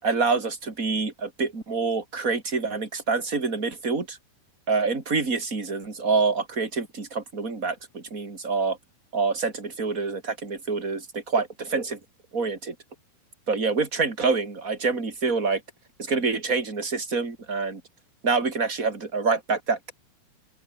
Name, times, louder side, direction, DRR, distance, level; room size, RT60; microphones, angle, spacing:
voice 1, 0.0-4.2 4.7-8.8 9.1-12.0 12.3-12.7 13.5-15.6 16.0-17.8 18.2-19.9, right 4 dB, 20° right, 4.3 m, -26 dB
open air
omnidirectional pair, 4.8 m